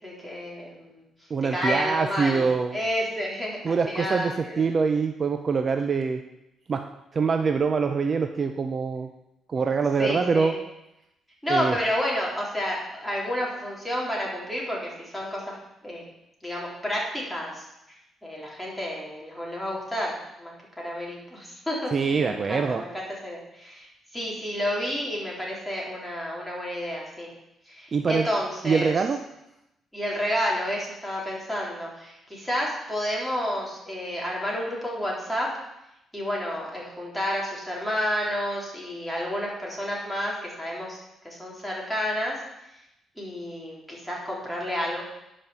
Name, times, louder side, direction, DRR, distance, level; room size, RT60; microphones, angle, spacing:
voice 1, 0.0-1.0 1.5-2.5 2.7-4.6 10.0-10.5 11.4-15.6 15.8-16.0 16.4-18.0 18.2-22.9 23.2-23.9 24.1-27.3 27.7-28.9 29.9-35.5 36.1-41.0 41.2-42.4 43.2-45.0, equal, ahead, -4 dB, 3.8 m, -30 dB
voice 2, 1.3-2.8 3.6-6.2 6.7-9.1 9.5-10.6 11.5-11.8 21.9-22.8 27.9-28.3 28.6-29.2, right 5 dB, 40° right, 6 dB, 0.7 m, -24 dB
10.5 x 5.4 x 7.1 m, 0.86 s
cardioid pair, 90°, 0 cm